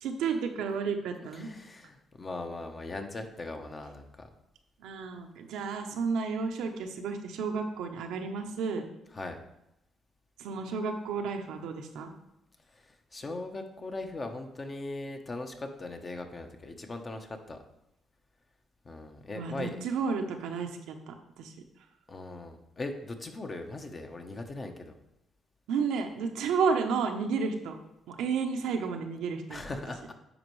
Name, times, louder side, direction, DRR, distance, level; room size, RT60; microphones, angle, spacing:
voice 1, 0.0-1.5 4.8-8.9 10.4-12.1 19.3-21.5 25.7-27.7 28.1-29.6, right 5 dB, 90° right, 4 dB, 0.8 m, -32 dB
voice 2, 1.3-4.3 9.1-9.4 12.7-17.6 18.8-19.8 22.1-25.0 29.5-30.1, left 2 dB, 30° left, 5 dB, 0.9 m, -39 dB
10.0 x 4.4 x 3.2 m, 0.86 s
cardioid pair, 90°, 0 cm